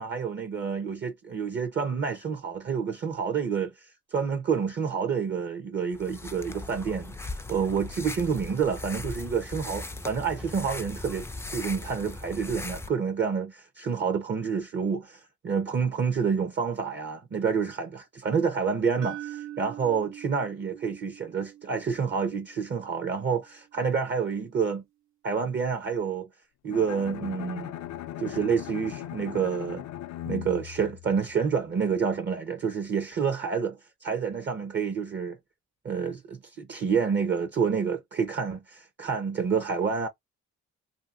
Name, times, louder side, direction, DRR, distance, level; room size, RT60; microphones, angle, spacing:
voice 1, 0.0-24.8 25.2-26.3 26.6-27.7 28.2-29.8 30.3-35.4 35.8-40.1, right 6 dB, 35° right, 0.7 m, -28 dB
sound 1, 5.9-12.9, left 2 dB, 10° left, 0.4 m, -39 dB
sound 2, 19.0-23.1, right 13 dB, 75° right, 0.5 m, -43 dB
Bowed string instrument, 26.7-31.7, left 13 dB, 65° left, 0.5 m, -39 dB
2.7 x 2.7 x 2.4 m
cardioid pair, 90°, 30 cm